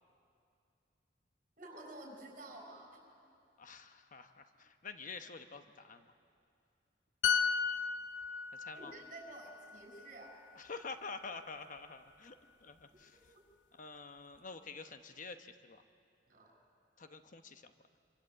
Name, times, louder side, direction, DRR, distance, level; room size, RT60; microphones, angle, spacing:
voice 1, 1.6-3.0 8.7-10.3 16.3-16.5, right 2 dB, 45° right, 2 dB, 6.3 m, -51 dB
voice 2, 3.6-6.1 8.5-8.9 10.6-13.2 13.7-15.8 17.0-17.7, left 4 dB, 45° left, 8 dB, 1.0 m, -48 dB
sound 1, 7.2-10.8 11.2-11.4, left 6 dB, 80° left, 0.7 m, -36 dB
26.0 x 25.0 x 7.8 m, 2.5 s
head